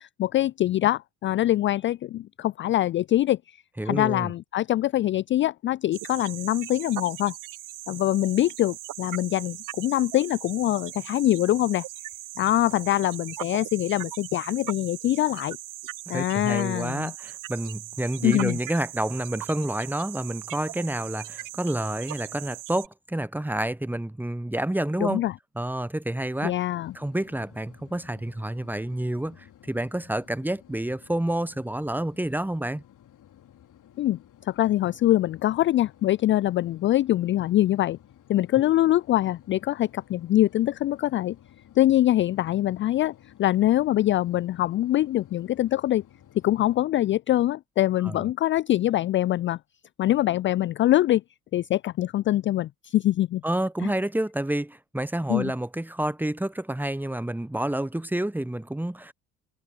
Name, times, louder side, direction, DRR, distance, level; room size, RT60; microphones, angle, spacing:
voice 1, 0.0-3.6 3.9-7.4 7.9-11.8 12.4-15.6 16.1-17.1 18.2-18.6 25.0-25.3 26.4-26.9 34.0-38.0 38.3-41.4 41.8-46.0 46.4-49.6 50.0-51.2 51.5-53.4 53.8-53.9 55.3-55.5, left 14 dB, 30° left, 0.4 m, -24 dB
voice 2, 3.8-4.3 16.1-25.2 25.5-26.5 26.9-32.8 48.0-48.3 53.4-59.1, right 1 dB, 5° right, 1.2 m, -29 dB
sound 1, 5.9-22.9, right 15 dB, 45° right, 1.1 m, -39 dB
sound 2, 26.8-46.8, left 11 dB, 45° left, 3.2 m, -54 dB
figure-of-eight pair, 55°, 43 cm